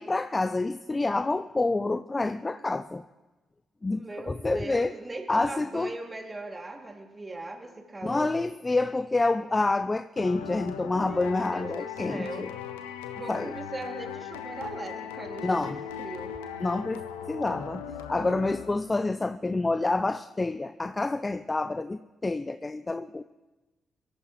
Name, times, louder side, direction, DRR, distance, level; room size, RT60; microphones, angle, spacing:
voice 1, 0.0-3.0 3.8-4.9 5.3-5.9 8.0-12.5 13.3-13.5 15.4-15.8 16.6-17.0 17.3-17.8 18.1-23.2, left 2 dB, 25° left, 12 dB, 0.5 m, -28 dB
voice 2, 3.9-8.4 10.8-12.5 13.1-16.4, right 2 dB, 30° right, 3 dB, 2.4 m, -40 dB
sound 1, 10.2-19.1, left 8 dB, 85° left, 0.7 m, -39 dB
23.0 x 14.0 x 3.1 m, 1.2 s
hypercardioid pair, 40°, 0 cm